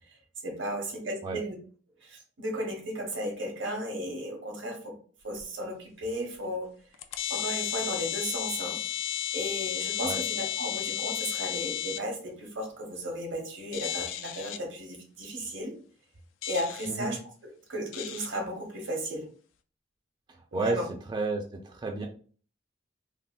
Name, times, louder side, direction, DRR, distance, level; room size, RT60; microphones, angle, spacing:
voice 1, 0.1-1.6 2.0-5.0 5.2-6.7 7.3-8.8 9.3-15.8 16.4-19.3 20.5-20.9, equal, 80° right, 2 dB, 0.9 m, -35 dB
sound 1, 5.4-5.5 6.3-6.4 6.9-12.0 13.7-14.6 16.4-16.9 17.9-18.3, left 11 dB, 85° left, 0.3 m, -33 dB
voice 2, 16.9-17.2 20.3-20.8 21.1-22.1, right 3 dB, 25° right, 3 dB, 0.3 m, -32 dB
3.5 x 2.1 x 2.4 m, 0.42 s
head